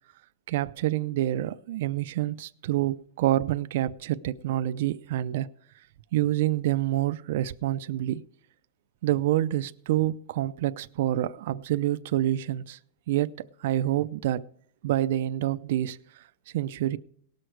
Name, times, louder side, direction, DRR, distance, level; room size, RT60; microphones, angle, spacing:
voice 1, 0.5-5.5 6.1-8.2 9.0-12.8 13.1-13.3 13.6-14.4 14.8-16.0 16.5-17.0, right 13 dB, 60° right, 0.5 m, -27 dB
18.5 x 6.4 x 4.6 m
supercardioid pair, 160°, 0 cm